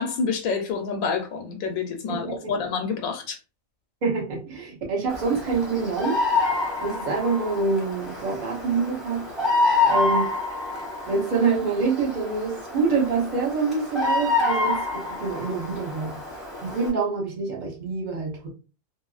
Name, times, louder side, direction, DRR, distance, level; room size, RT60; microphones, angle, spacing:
voice 1, 0.0-3.4, left 5 dB, 85° left, 1.0 m, -28 dB
voice 2, 2.1-2.5 4.0-6.2 6.8-9.3 9.8-10.3 11.1-16.2 16.6-18.5, right 4 dB, 40° right, 0.8 m, -26 dB
Bird vocalization bird call bird song, 5.1-16.9, left 3 dB, ahead, 0.8 m, -27 dB
2.8 x 2.5 x 2.3 m
omnidirectional pair, 1.4 m